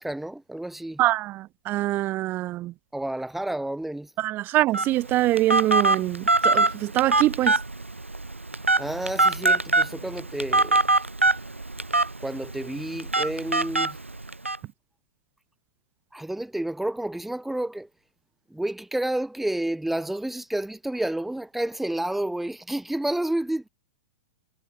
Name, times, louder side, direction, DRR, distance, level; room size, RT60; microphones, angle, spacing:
voice 1, 0.0-1.0 2.9-4.1 8.8-10.8 12.2-14.0 16.1-17.9 18.5-23.7, right 1 dB, 5° right, 7.3 m, -30 dB
voice 2, 1.0-2.7 4.2-7.5, right 16 dB, 30° right, 1.1 m, -24 dB
Telephone, 4.7-14.6, right 2 dB, 85° right, 1.0 m, -24 dB
figure-of-eight pair, 100°, 7 cm